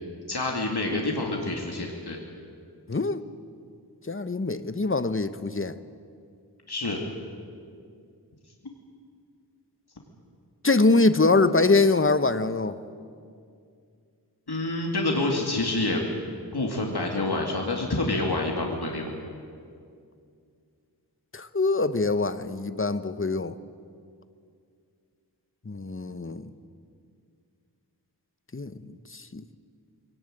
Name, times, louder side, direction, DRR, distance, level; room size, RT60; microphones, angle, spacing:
voice 1, 0.3-2.2 6.7-7.0 8.6-8.7 14.5-16.0 16.5-19.1, left 2 dB, 70° left, 0 dB, 2.5 m, -27 dB
voice 2, 2.9-3.2 4.1-5.7 10.6-12.8 21.3-23.5 25.7-26.5 28.5-28.7 29.3-29.4, left 3 dB, 30° left, 12 dB, 1.0 m, -23 dB
22.5 x 18.5 x 9.1 m, 2.3 s
wide cardioid pair, 50°, 40 cm